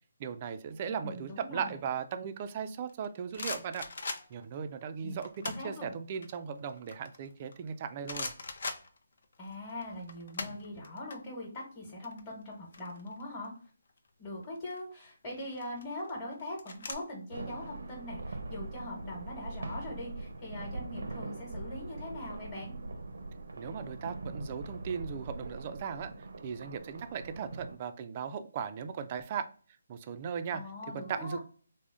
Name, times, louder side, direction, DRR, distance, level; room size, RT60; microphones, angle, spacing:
voice 1, 0.2-3.9 4.3-8.3 23.6-26.1 26.4-29.5 29.9-30.6 30.9-31.4, right 7 dB, 35° right, 9 dB, 0.3 m, -37 dB
voice 2, 0.9-1.8 5.0-5.9 9.4-13.5 14.2-22.7 30.5-31.4, left 1 dB, 20° left, -3 dB, 1.1 m, -42 dB
sound 1, 2.9-4.5 5.2-5.7 6.1-7.7 8.0-9.4 9.7-11.2 11.4-11.6 11.9-13.4 14.4-14.8 15.5-16.9, left 3 dB, 60° left, 0.5 m, -40 dB
sound 2, 17.3-27.8, right 2 dB, 75° right, 0.6 m, -42 dB
3.5 x 2.0 x 3.6 m, 0.41 s
figure-of-eight pair, 150°, 0 cm